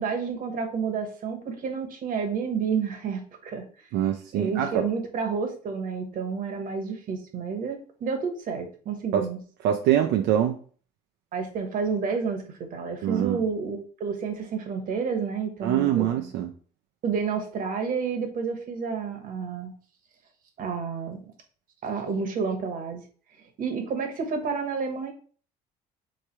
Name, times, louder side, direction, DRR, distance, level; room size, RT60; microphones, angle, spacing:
voice 1, 0.0-3.6 4.3-9.4 11.3-16.1 17.0-19.7 20.6-21.2 21.8-23.0 23.6-25.1, right 5 dB, 55° right, 4 dB, 1.1 m, -30 dB
voice 2, 3.9-4.8 9.1-9.3 9.6-10.6 13.0-13.4 15.6-16.5, right 11 dB, 85° right, 4 dB, 0.5 m, -24 dB
3.4 x 3.3 x 4.3 m, 0.42 s
cardioid pair, 110°, 17 cm